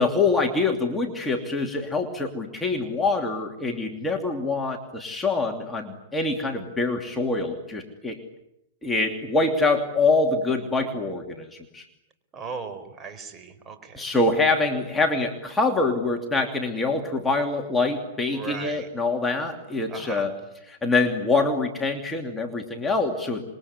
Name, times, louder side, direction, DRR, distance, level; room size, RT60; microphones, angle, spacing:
voice 1, 0.0-8.2 8.8-11.8 13.9-20.3 20.7-23.5, left 3 dB, 10° left, 2 dB, 2.8 m, -25 dB
voice 2, 12.3-14.1 18.3-18.9 19.9-20.3, right 5 dB, 20° right, 7 dB, 4.6 m, -37 dB
26.5 x 22.5 x 9.8 m, 0.82 s
hypercardioid pair, 135°, 0 cm